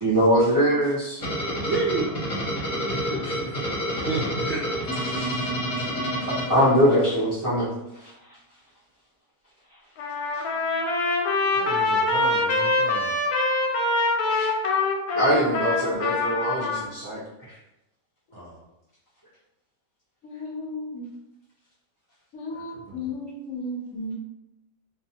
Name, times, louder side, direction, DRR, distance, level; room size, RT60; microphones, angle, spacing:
voice 1, 0.0-1.2 3.1-3.4 5.0-5.9 6.2-7.7 14.3-14.5 15.1-17.2, equal, 30° right, -11 dB, 0.3 m, -23 dB
sound 1, 1.2-7.2, equal, 30° left, 0.7 m, -29 dB
voice 2, 1.6-2.1 4.0-4.6 11.5-13.2 18.3-18.6 22.5-23.1, right 3 dB, 65° right, -4 dB, 0.7 m, -31 dB
Trumpet, 10.0-16.8, left 2 dB, 85° left, 1.1 m, -24 dB
voice 3, 20.2-21.1 22.3-24.1, left 2 dB, 65° left, -1 dB, 0.9 m, -34 dB
2.4 x 2.4 x 2.7 m, 0.91 s
omnidirectional pair, 1.6 m